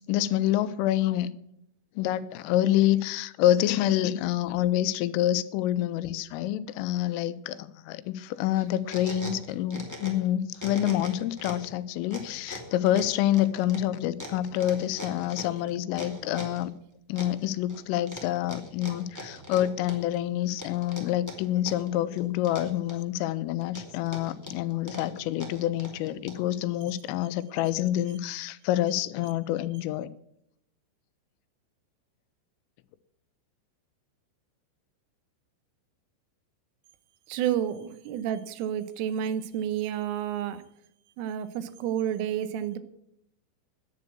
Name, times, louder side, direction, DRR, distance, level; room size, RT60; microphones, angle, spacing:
voice 1, 0.1-1.3 2.0-16.7 17.1-30.1, left 13 dB, 85° left, 3.3 m, -27 dB
sound 1, 8.5-10.3 10.5-11.7 12.1-16.6 17.2-17.8 18.1-20.2 20.6-21.9 22.2-23.2 23.6-26.5, left 1 dB, 15° right, 0.5 m, -41 dB
voice 2, 37.3-40.6 41.2-42.8, right 10 dB, 85° right, 3.5 m, -30 dB
10.5 x 9.4 x 8.3 m
omnidirectional pair, 5.8 m